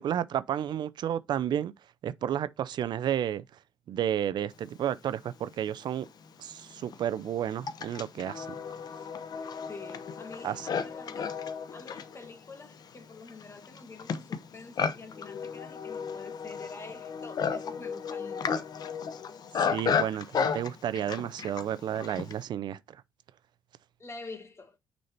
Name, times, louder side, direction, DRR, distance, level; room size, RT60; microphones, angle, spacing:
voice 1, 0.0-1.7 2.0-3.4 3.9-6.1 6.4-8.5 10.4-10.7 19.6-23.0, right 10 dB, 65° right, 0.5 m, -31 dB
Livestock farm animals working animals, 5.7-5.8 6.5-22.4, left 6 dB, 55° left, 0.9 m, -34 dB
voice 2, 9.7-18.5 24.0-24.8, left 3 dB, 35° left, 1.8 m, -47 dB
6.3 x 4.1 x 4.4 m
cardioid pair, 75°, 8 cm